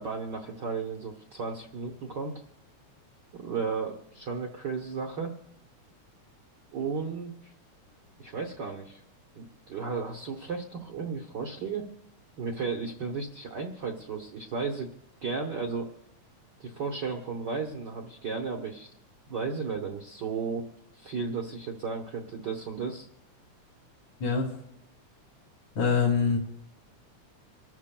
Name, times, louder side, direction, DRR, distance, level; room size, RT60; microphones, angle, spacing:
voice 1, 0.0-2.3 3.3-5.3 6.7-7.5 8.2-9.0 9.3-11.9 12.4-14.9 15.2-15.9 16.6-18.9 19.3-20.6 20.9-23.1, right 5 dB, 70° right, 2 dB, 1.0 m, -34 dB
voice 2, 24.2-24.5 25.8-26.4, left 5 dB, 70° left, -3 dB, 3.3 m, -24 dB
27.5 x 13.0 x 2.2 m, 0.76 s
omnidirectional pair, 3.4 m